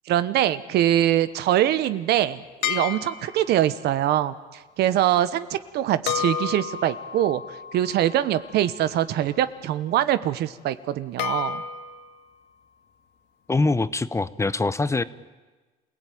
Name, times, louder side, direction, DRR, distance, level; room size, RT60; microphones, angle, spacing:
voice 1, 0.1-4.3 4.8-7.4 7.7-11.6, right 12 dB, 75° right, 14 dB, 1.1 m, -23 dB
sound 1, 2.6-3.6 6.1-9.2 11.2-12.1, left 8 dB, 85° left, 2.0 m, -32 dB
voice 2, 13.5-15.0, left 3 dB, 15° left, 15 dB, 0.8 m, -23 dB
27.5 x 17.0 x 9.3 m, 1.3 s
cardioid pair, 110°, 17 cm